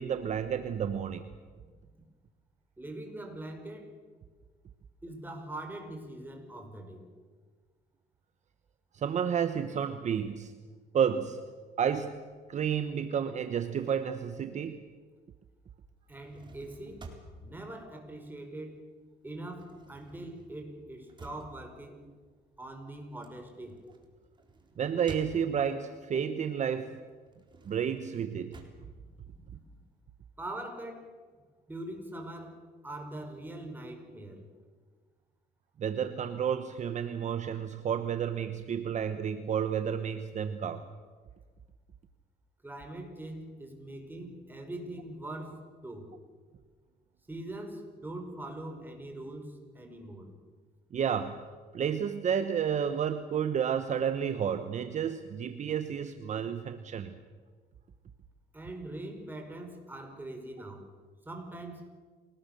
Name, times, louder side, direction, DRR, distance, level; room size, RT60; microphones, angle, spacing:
voice 1, 0.0-1.3 8.9-10.5 10.9-11.4 11.8-14.8 24.8-27.0 27.7-28.6 35.8-40.9 50.9-57.2, right 8 dB, 45° right, 10 dB, 1.1 m, -31 dB
voice 2, 2.8-4.0 5.0-7.0 16.1-17.1 17.4-18.8 19.2-22.1 22.6-23.8 30.4-31.1 31.7-34.5 42.6-46.1 47.3-50.4 58.5-60.8 61.2-61.9, right 1 dB, 10° right, 3 dB, 5.4 m, -42 dB
sound 1, 16.0-18.8 19.1-25.9 26.4-29.9, right 3 dB, 25° right, 4.0 m, -52 dB
28.0 x 19.5 x 6.8 m, 1.5 s
cardioid pair, 110°, 17 cm